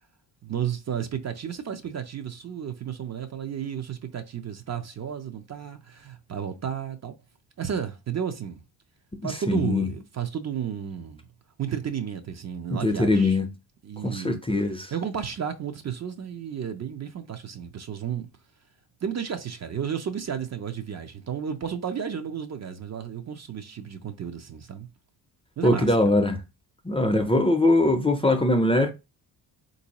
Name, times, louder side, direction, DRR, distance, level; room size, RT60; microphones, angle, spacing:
voice 1, 0.4-7.2 7.6-8.6 9.2-11.2 11.6-13.4 13.8-14.4 14.9-18.3 19.0-24.9 25.6-26.2, right 8 dB, 40° right, 0.5 m, -32 dB
voice 2, 9.2-9.9 12.7-13.5 14.0-14.9 25.6-26.4 26.8-28.9, left 2 dB, 15° left, 0.4 m, -22 dB
3.7 x 2.6 x 2.9 m
cardioid pair, 85°, 43 cm